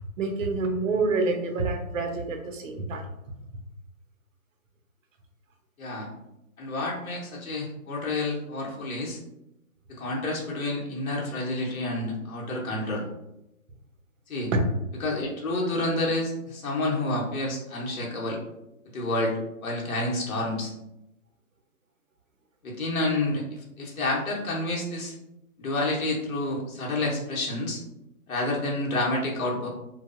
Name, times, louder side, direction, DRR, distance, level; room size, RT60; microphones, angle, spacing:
voice 1, 0.2-3.1 14.5-14.6, right 3 dB, 65° right, 4 dB, 0.6 m, -27 dB
voice 2, 6.6-9.2 9.9-13.0 14.3-14.5 15.0-18.4 18.9-20.7 22.6-25.1 25.6-27.8 28.3-29.7, left 2 dB, 75° left, -3 dB, 0.9 m, -29 dB
3.0 x 2.0 x 2.4 m, 0.87 s
hypercardioid pair, 170°, 43 cm